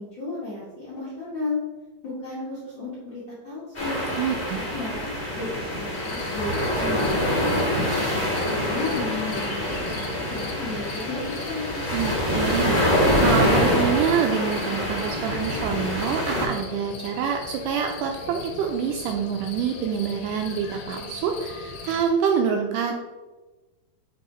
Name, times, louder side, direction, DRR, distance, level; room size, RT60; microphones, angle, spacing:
voice 1, 0.0-1.6 2.0-4.0 4.5-8.0 8.4-11.8, left 3 dB, 60° left, -8 dB, 1.2 m, -34 dB
sound 1, 3.7-16.5, equal, 25° left, 0.8 m, -25 dB
voice 2, 4.2-4.6 11.9-22.9, right 7 dB, 80° right, 3 dB, 1.9 m, -26 dB
sound 2, 5.9-22.1, left 5 dB, 80° left, 2.1 m, -39 dB
6.0 x 4.1 x 3.9 m, 1.2 s
omnidirectional pair, 4.0 m